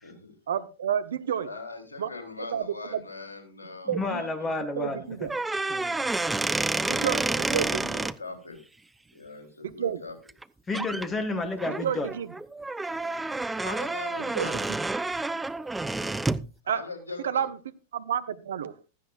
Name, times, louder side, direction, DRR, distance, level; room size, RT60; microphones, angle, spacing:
voice 1, 0.5-1.5 2.0-2.1 2.5-3.1 3.9-4.2 4.7-5.3 6.9-8.0 9.6-10.0 11.7-12.3 14.4-14.5 16.7-16.8 17.2-17.6 17.9-18.7, right 9 dB, 65° right, 13 dB, 0.8 m, -30 dB
voice 2, 1.4-5.1 5.4-5.6 6.9-8.6 9.1-10.2 13.6-14.8 16.6-17.5, left 3 dB, 75° left, 4 dB, 3.5 m, -41 dB
voice 3, 3.9-5.0 5.7-6.0 10.7-12.1, left 2 dB, 20° left, 11 dB, 1.6 m, -30 dB
sound 1, 5.2-8.1 10.3-10.4 10.7-11.1 11.6-16.5, right 2 dB, 5° right, 0.5 m, -29 dB
15.5 x 13.0 x 2.5 m, 0.32 s
figure-of-eight pair, 90°, 0 cm